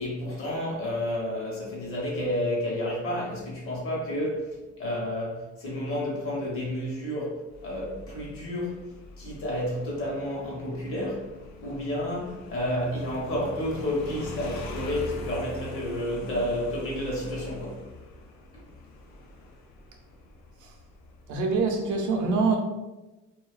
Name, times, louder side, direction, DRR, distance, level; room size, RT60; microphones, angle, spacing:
voice 1, 0.0-8.8 9.2-17.8 18.5-18.6, left 1 dB, 45° left, -4 dB, 0.9 m, -31 dB
Motorcycle, 7.5-21.8, left 1 dB, 60° left, 0.5 m, -42 dB
voice 2, 21.3-22.6, right 4 dB, 70° right, 3 dB, 0.6 m, -25 dB
2.6 x 2.3 x 2.3 m, 1.1 s
cardioid pair, 180°, 31 cm